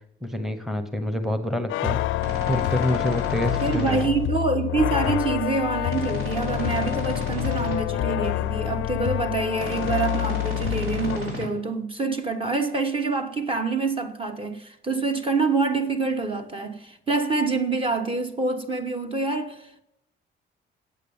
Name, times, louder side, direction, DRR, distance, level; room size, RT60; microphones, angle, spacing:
voice 1, 0.2-2.0 2.5-4.0 5.0-5.1, equal, ahead, 1.0 m, -27 dB
sound 1, 1.7-11.2, left 15 dB, 80° left, 0.4 m, -27 dB
sound 2, 2.2-4.0 5.9-7.7 9.6-11.4, left 2 dB, 85° right, 5.6 m, -34 dB
voice 2, 3.6-19.8, right 4 dB, 30° right, 1.1 m, -26 dB
8.6 x 8.3 x 7.1 m
cardioid pair, 90°, 20 cm